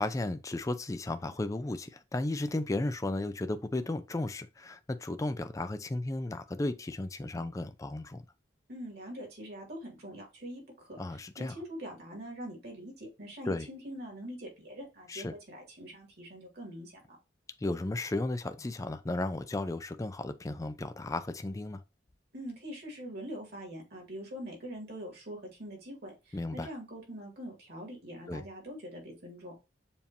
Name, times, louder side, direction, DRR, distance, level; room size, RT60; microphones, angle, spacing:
voice 1, 0.0-8.2 11.0-11.5 13.5-13.7 15.1-15.3 17.6-21.8 26.3-26.7 28.3-28.4, left 2 dB, 15° left, 0.3 m, -34 dB
voice 2, 8.7-11.0 11.4-17.0 22.3-29.5, equal, 55° right, 2.3 m, -43 dB
7.1 x 2.8 x 2.7 m
head